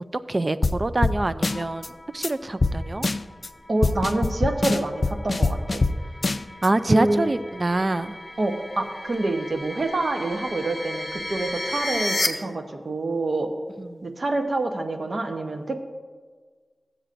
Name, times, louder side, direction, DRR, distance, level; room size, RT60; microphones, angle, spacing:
voice 1, 0.3-3.1 6.6-8.2 13.8-14.1, right 2 dB, 40° right, 12 dB, 0.3 m, -25 dB
sound 1, 0.6-0.8 1.0-1.2 1.4-1.9 2.2-2.3 2.6-2.7 3.0-3.5 3.8-5.9 6.2-6.7, left 3 dB, 50° left, 0.3 m, -23 dB
sound 2, 1.3-12.3, left 1 dB, 35° left, 0.7 m, -35 dB
voice 2, 3.7-5.8 6.9-7.2 8.4-13.5 14.0-15.8, right 2 dB, 60° right, 5 dB, 0.8 m, -26 dB
15.0 x 7.8 x 2.5 m, 1.5 s
wide cardioid pair, 85°, 0 cm